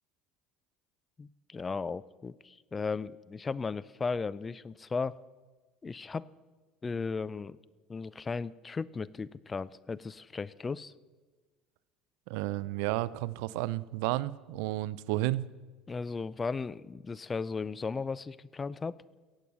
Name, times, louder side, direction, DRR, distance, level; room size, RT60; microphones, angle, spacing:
voice 1, 1.2-5.2 5.8-6.3 6.8-7.6 7.9-10.9 15.9-19.0, left 4 dB, 25° left, 19 dB, 0.4 m, -36 dB
voice 2, 12.3-15.5, right 17 dB, 75° right, 20 dB, 0.4 m, -32 dB
15.5 x 8.4 x 6.3 m, 1.3 s
supercardioid pair, 85°, 0 cm